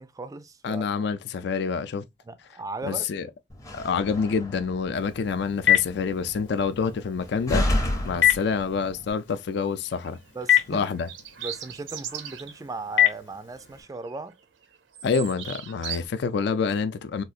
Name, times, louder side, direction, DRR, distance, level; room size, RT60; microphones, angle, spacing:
voice 1, 0.0-1.1 2.3-3.1 8.1-8.3 10.3-10.9 11.4-14.4, right 3 dB, 20° right, 0.3 m, -37 dB
voice 2, 0.6-2.0 2.9-3.3 3.7-7.6 8.0-10.2 10.7-11.1 15.0-17.2, left 5 dB, 65° left, 0.4 m, -27 dB
Slam, 3.5-9.1, left 1 dB, 20° left, 0.6 m, -32 dB
Telephone, 5.0-13.8, left 11 dB, 85° left, 1.0 m, -28 dB
sound 1, 9.9-10.2 11.0-12.6 13.0-13.2 13.6-14.3 14.6-16.0, right 10 dB, 85° right, 0.6 m, -38 dB
3.8 x 2.3 x 2.4 m
head